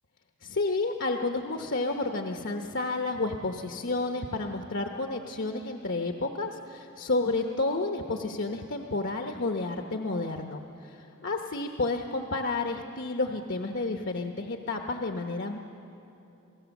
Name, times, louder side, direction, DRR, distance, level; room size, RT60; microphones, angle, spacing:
voice 1, 0.4-15.6, left 3 dB, 60° left, 3 dB, 1.0 m, -31 dB
29.0 x 18.0 x 7.2 m, 3.0 s
head